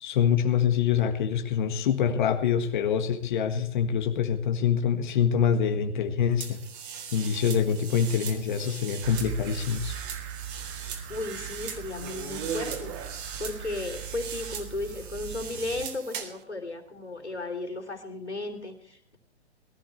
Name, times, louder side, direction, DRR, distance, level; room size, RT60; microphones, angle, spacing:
voice 1, 0.0-6.6 7.1-10.0, left 8 dB, 45° left, 5 dB, 1.6 m, -25 dB
sound 1, 6.4-16.4, right 7 dB, 50° right, 3.7 m, -39 dB
sound 2, 9.0-15.9, right 9 dB, 25° right, 1.6 m, -40 dB
voice 2, 11.1-12.9 13.4-19.2, left 2 dB, 85° left, 4 dB, 3.5 m, -35 dB
21.5 x 14.0 x 3.2 m, 0.68 s
figure-of-eight pair, 115°, 33 cm